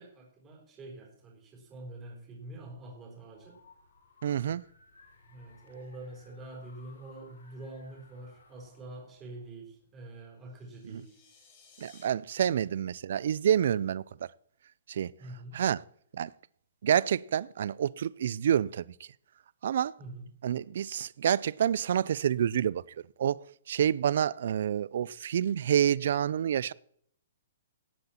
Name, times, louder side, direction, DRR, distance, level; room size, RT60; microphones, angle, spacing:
voice 1, 0.0-3.6 5.3-11.2 12.6-12.7 15.2-15.6 20.0-20.3, right 2 dB, 15° right, 3.8 m, -46 dB
sound 1, 2.9-10.1, left 4 dB, 80° left, 6.6 m, -60 dB
voice 2, 4.2-4.6 10.9-11.0 11.8-14.3 14.9-15.1 15.5-15.8 16.1-16.3 16.8-18.9 19.6-20.0 20.4-22.8 23.2-26.7, right 9 dB, 50° right, 0.4 m, -28 dB
sound 2, 10.5-12.1, left 5 dB, 25° left, 3.4 m, -59 dB
17.5 x 8.1 x 4.3 m
hypercardioid pair, 175°, 0 cm